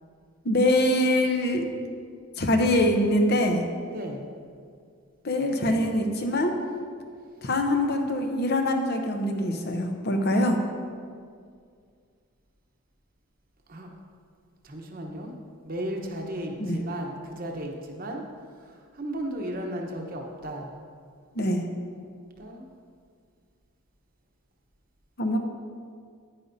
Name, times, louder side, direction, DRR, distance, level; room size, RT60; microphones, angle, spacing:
voice 1, 0.4-1.7 2.4-3.6 5.2-6.5 7.4-10.6 16.6-16.8 21.3-21.6 25.2-25.4, left 1 dB, 45° left, 4 dB, 0.7 m, -24 dB
voice 2, 3.9-4.3 13.7-13.9 14.6-15.3 15.6-18.2 18.9-20.7 22.4-22.7, right 1 dB, 40° right, 1 dB, 0.9 m, -35 dB
10.0 x 9.6 x 2.7 m, 2.2 s
head